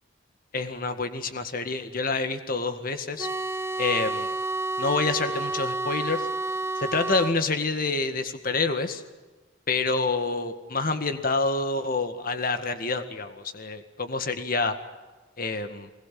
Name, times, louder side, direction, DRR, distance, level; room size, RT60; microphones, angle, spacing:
voice 1, 0.5-3.3 3.8-4.3 4.8-6.3 6.8-9.0 9.7-14.7 15.4-15.9, left 3 dB, 50° left, 8 dB, 1.9 m, -27 dB
sound 1, 3.2-7.4, right 2 dB, 15° right, 0.7 m, -30 dB
23.5 x 20.5 x 7.7 m, 1.3 s
head